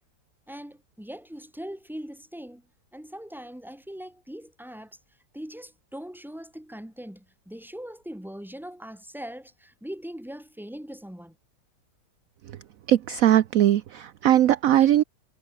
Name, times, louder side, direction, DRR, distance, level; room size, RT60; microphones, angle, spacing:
voice 1, 0.5-2.7 2.9-5.0 5.3-11.3, equal, ahead, 3.2 m, -41 dB
voice 2, 12.9-15.0, right 12 dB, 60° right, 1.0 m, -20 dB
omnidirectional pair, 1.8 m